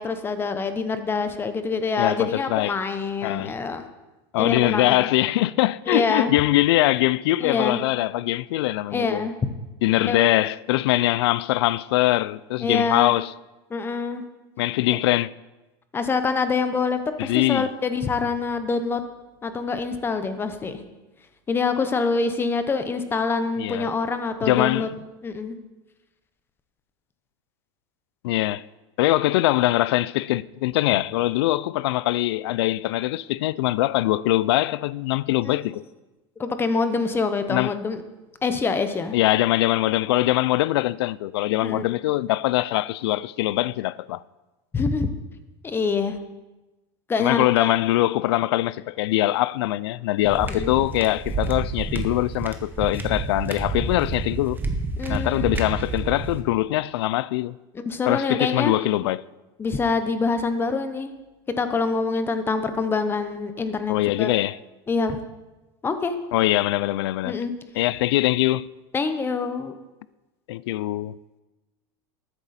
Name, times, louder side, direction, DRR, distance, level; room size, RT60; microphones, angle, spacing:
voice 1, 0.0-3.9 4.4-5.1 5.9-6.3 7.4-7.8 8.9-9.3 10.1-10.3 12.6-13.1 13.7-14.2 14.9-15.0 15.9-19.0 19.4-20.8 21.5-24.9 25.2-25.6 35.4-35.6 36.4-38.0 38.4-39.2 41.6-41.9 44.7-45.2 45.6-46.2 47.1-47.7 50.5-50.7 55.0-55.6 57.7-58.7 59.6-61.1 61.6-64.3 64.9-65.2 65.8-66.2 67.2-67.5 68.9-69.7, left 4 dB, 15° left, 0.8 m, -25 dB
voice 2, 2.0-2.8 3.2-3.5 4.3-9.3 9.8-13.3 14.6-15.3 17.2-17.7 23.6-23.9 24.4-24.9 28.2-28.7 29.0-35.8 37.5-37.7 39.1-44.2 47.2-54.6 55.1-57.6 58.1-59.2 63.9-64.6 66.3-67.4 67.8-68.7 70.5-71.2, left 16 dB, 80° left, 0.4 m, -22 dB
sound 1, 50.2-56.4, right 3 dB, 15° right, 1.0 m, -29 dB
13.0 x 9.0 x 4.2 m
supercardioid pair, 140°, 13 cm